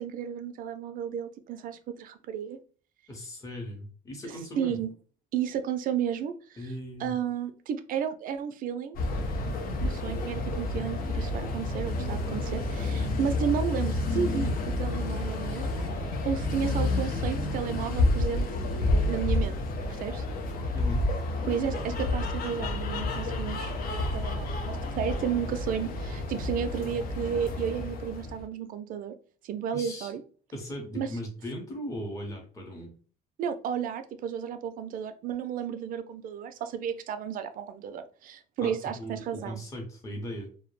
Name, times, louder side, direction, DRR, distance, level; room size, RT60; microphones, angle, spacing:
voice 1, 0.0-2.6 4.2-4.9 5.3-6.7 7.0-9.0 9.8-18.5 18.8-19.6 19.9-20.2 21.5-29.1 29.4-30.2 30.9-31.1 33.4-39.6, right 8 dB, 55° right, 9 dB, 0.4 m, -33 dB
voice 2, 3.1-4.8 6.6-7.1 13.1-13.3 20.7-21.0 29.7-30.1 30.5-32.9 38.6-40.5, equal, 20° left, -1 dB, 0.7 m, -38 dB
sound 1, 8.9-28.4, left 2 dB, 60° left, 0.5 m, -30 dB
2.2 x 2.0 x 3.0 m, 0.41 s
cardioid pair, 110°, 17 cm